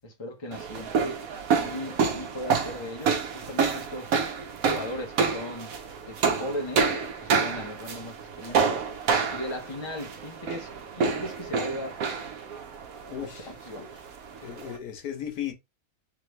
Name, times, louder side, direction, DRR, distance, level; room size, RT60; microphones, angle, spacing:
voice 1, 0.0-4.2 4.7-8.8 9.3-12.0 13.2-14.1, left 1 dB, 20° left, 1.0 m, -38 dB
sound 1, 0.5-14.8, right 5 dB, 70° right, 1.3 m, -28 dB
voice 2, 13.1-13.9 14.4-15.5, left 10 dB, 80° left, 1.4 m, -36 dB
3.6 x 3.3 x 3.2 m
omnidirectional pair, 1.6 m